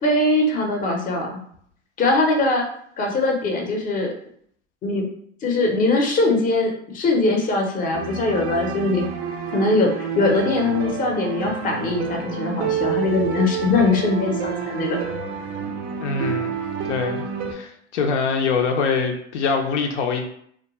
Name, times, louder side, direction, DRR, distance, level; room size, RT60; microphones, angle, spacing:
voice 1, 0.0-1.4 2.0-2.7 3.0-4.1 4.8-5.1 5.4-9.0 9.5-15.0, left 2 dB, 25° left, 2 dB, 0.6 m, -21 dB
sound 1, 7.9-17.5, right 7 dB, 25° right, 0.4 m, -29 dB
voice 2, 16.0-16.5 16.8-17.3 17.5-20.2, left 5 dB, 70° left, 4 dB, 0.5 m, -23 dB
2.3 x 2.1 x 2.9 m, 0.66 s
hypercardioid pair, 95°, 36 cm